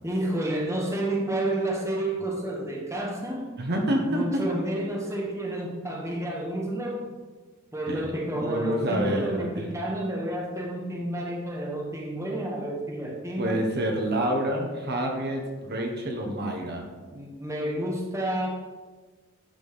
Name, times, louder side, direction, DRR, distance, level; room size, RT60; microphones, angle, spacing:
voice 1, 0.0-3.5 4.1-7.1 7.7-13.6 17.1-18.5, right 1 dB, 15° right, -1 dB, 1.1 m, -30 dB
voice 2, 3.6-4.5 7.8-9.8 13.4-16.9, right 1 dB, 50° right, 2 dB, 1.0 m, -28 dB
11.5 x 4.2 x 3.5 m, 1.3 s
head